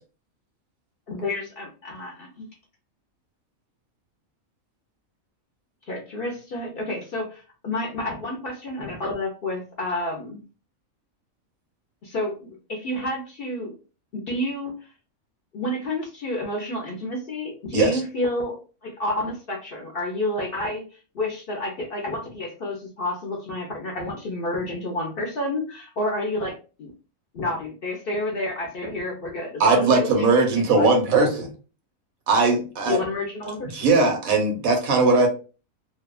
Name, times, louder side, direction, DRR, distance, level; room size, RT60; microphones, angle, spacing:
voice 1, 1.1-2.5 5.9-10.4 12.0-13.7 14.1-14.7 15.5-18.6 18.8-26.5 26.8-26.9 27.3-30.4 30.8-30.9 32.9-33.8, left 1 dB, 55° left, 0 dB, 0.7 m, -30 dB
voice 2, 29.6-31.5 32.3-33.0 33.7-35.3, right 3 dB, 80° right, 2 dB, 1.2 m, -19 dB
2.7 x 2.2 x 2.3 m, 0.34 s
omnidirectional pair, 1.5 m